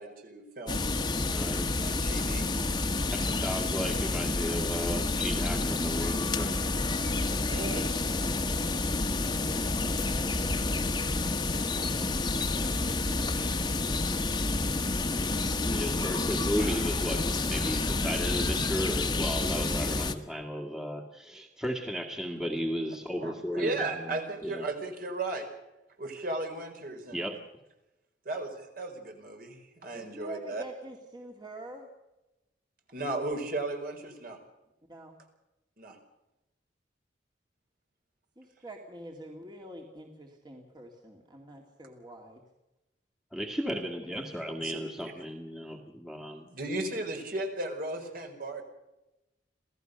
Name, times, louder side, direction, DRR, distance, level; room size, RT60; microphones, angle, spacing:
voice 1, 0.0-1.2 1.8-2.5 7.5-7.9 16.6-16.8 23.2-25.5 26.0-27.3 28.2-30.6 32.9-34.4 35.8-36.0 44.6-44.7 46.4-48.6, right 2 dB, 55° right, 4 dB, 4.7 m, -35 dB
sound 1, 0.7-20.1, left 2 dB, 25° left, 1.3 m, -29 dB
voice 2, 1.2-1.8 3.1-6.7 15.6-24.2 24.4-24.6 27.1-27.4 43.3-46.5, equal, 5° right, 3 dB, 1.9 m, -35 dB
voice 3, 29.8-31.9 34.9-35.2 38.4-42.4, right 1 dB, 25° right, 1 dB, 2.3 m, -46 dB
27.0 x 16.5 x 6.7 m, 0.98 s
head